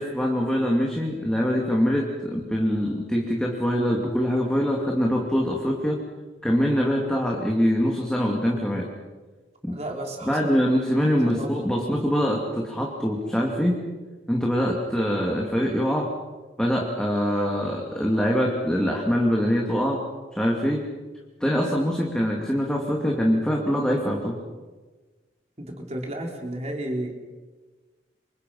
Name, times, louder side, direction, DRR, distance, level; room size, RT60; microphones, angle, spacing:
voice 1, 0.0-6.0 6.4-8.9 9.6-9.7 10.2-13.8 14.3-16.1 16.6-20.0 20.3-20.9 21.4-24.4, equal, 5° left, -1 dB, 2.6 m, -24 dB
voice 2, 9.7-10.7 11.3-11.9 25.6-27.1, right 1 dB, 35° right, 1 dB, 3.9 m, -33 dB
29.0 x 26.0 x 5.7 m, 1.3 s
head